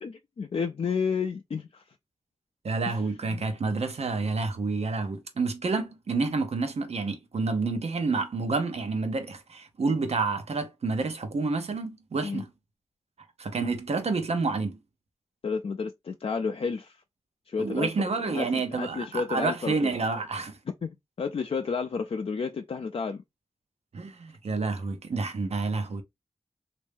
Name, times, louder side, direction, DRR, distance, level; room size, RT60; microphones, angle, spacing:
voice 1, 0.0-1.8 2.9-3.5 12.2-12.4 15.4-17.0 17.5-19.9 20.8-23.2, left 5 dB, 65° left, 0.4 m, -31 dB
voice 2, 2.6-12.5 13.4-14.8 17.6-20.6 23.9-26.0, right 3 dB, 85° right, 0.7 m, -29 dB
3.2 x 2.6 x 3.4 m
wide cardioid pair, 55°, 10 cm